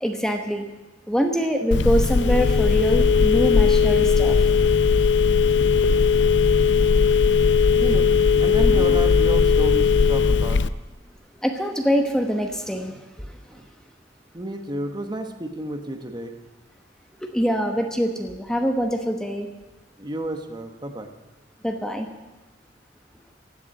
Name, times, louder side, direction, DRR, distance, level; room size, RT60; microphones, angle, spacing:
voice 1, 0.0-0.7 1.1-4.4 11.4-13.3 17.2-19.5 21.6-22.1, equal, 5° left, 4 dB, 1.0 m, -24 dB
Telephone, 1.7-10.7, left 5 dB, 85° left, 0.5 m, -18 dB
voice 2, 7.7-10.6 13.5-13.6 14.3-16.3 20.0-21.1, right 1 dB, 25° right, 6 dB, 1.2 m, -31 dB
15.5 x 7.2 x 9.7 m, 1.1 s
head